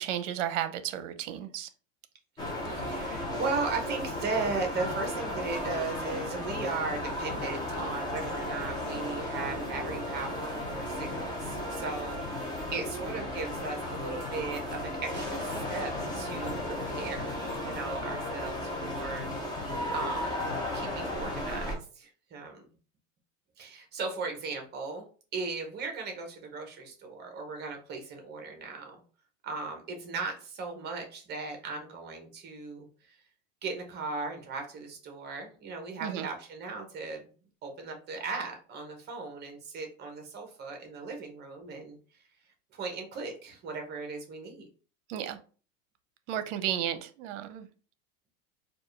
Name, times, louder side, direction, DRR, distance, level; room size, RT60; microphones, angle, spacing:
voice 1, 0.0-1.7 36.0-36.3 45.1-45.4 46.3-47.7, right 10 dB, 60° right, 11 dB, 0.7 m, -33 dB
sound 1, 2.4-21.8, left 1 dB, 10° left, 0.4 m, -35 dB
voice 2, 2.7-19.7 19.9-20.5 20.7-22.6 23.6-25.1 25.3-29.0 29.4-33.2 33.6-37.3 37.6-42.0 42.7-44.7, right 4 dB, 25° right, 4 dB, 0.8 m, -37 dB
4.5 x 2.4 x 3.2 m, 0.38 s
supercardioid pair, 150°, 42 cm